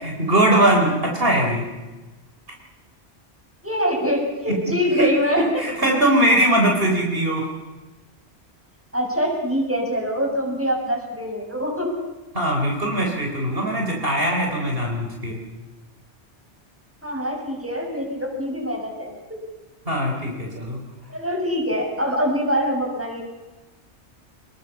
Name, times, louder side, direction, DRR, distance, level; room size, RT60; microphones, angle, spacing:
voice 1, 0.0-1.7 4.5-5.1 5.4-7.5 12.3-15.4 19.9-20.8, right 1 dB, 55° right, 1 dB, 4.2 m, -21 dB
voice 2, 3.6-5.4 8.9-11.9 17.0-19.1 21.1-23.2, equal, 10° right, 0 dB, 7.2 m, -24 dB
28.0 x 20.5 x 7.2 m, 1.2 s
omnidirectional pair, 1.2 m